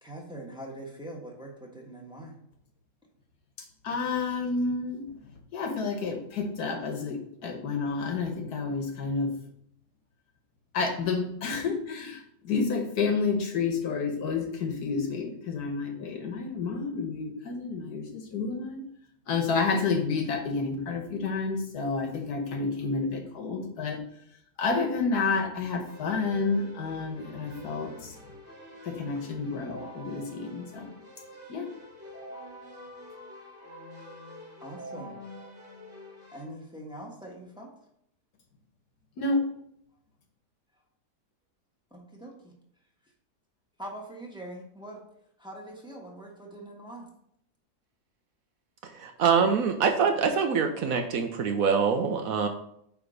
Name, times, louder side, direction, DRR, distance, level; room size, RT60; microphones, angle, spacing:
voice 1, 0.0-2.3 34.6-35.2 36.3-37.7 41.9-42.5 43.8-45.0 45.4-47.1, right 1 dB, 5° right, -2 dB, 1.3 m, -43 dB
voice 2, 3.8-5.0 5.5-9.3 10.7-18.8 19.3-24.0 24.6-28.1 28.9-30.9 31.5-31.7 39.2-39.4, left 4 dB, 70° left, 4 dB, 1.6 m, -30 dB
Keyboard (musical), 25.8-36.4, equal, 45° right, 2.9 m, -46 dB
voice 3, 49.0-52.5, right 6 dB, 65° right, 5 dB, 1.0 m, -24 dB
8.8 x 3.4 x 5.1 m, 0.72 s
omnidirectional pair, 1.7 m